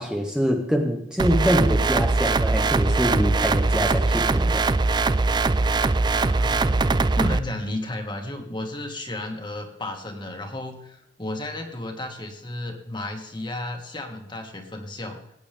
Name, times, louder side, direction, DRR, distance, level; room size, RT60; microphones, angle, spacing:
voice 1, 0.0-4.6, equal, 5° right, 1 dB, 1.4 m, -24 dB
sound 1, 1.2-7.4, right 3 dB, 25° right, 0.4 m, -21 dB
voice 2, 6.2-15.2, left 1 dB, 25° left, 3 dB, 2.0 m, -33 dB
19.5 x 9.4 x 3.6 m, 0.79 s
head